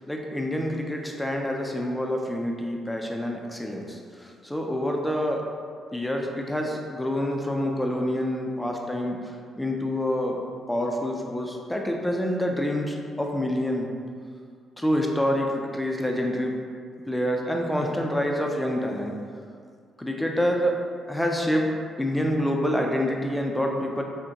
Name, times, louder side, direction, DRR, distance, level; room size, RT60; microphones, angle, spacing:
voice 1, 0.0-5.4 5.9-10.4 10.7-13.9 14.8-16.5 17.1-19.2 20.0-20.7 21.1-21.7 22.0-24.0, equal, 5° left, 1 dB, 0.4 m, -27 dB
6.0 x 2.2 x 2.8 m, 2.1 s
cardioid pair, 90°, 0 cm